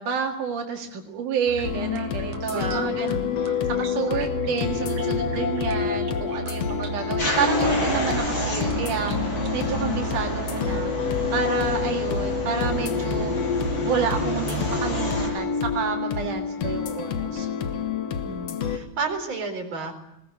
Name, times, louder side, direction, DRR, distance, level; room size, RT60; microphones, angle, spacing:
voice 1, 0.0-10.9 11.3-13.4 13.9-17.8, right 6 dB, 80° right, 2 dB, 3.5 m, -30 dB
sound 1, 1.5-10.2, right 4 dB, 65° right, 3.0 m, -37 dB
sound 2, 1.6-18.8, left 7 dB, 60° left, 2.3 m, -28 dB
voice 2, 2.5-3.0 18.2-19.9, right 4 dB, 40° right, 4 dB, 4.8 m, -31 dB
sound 3, 7.2-15.3, right 1 dB, 35° left, 7.7 m, -29 dB
21.0 x 18.5 x 9.7 m, 0.86 s
omnidirectional pair, 3.5 m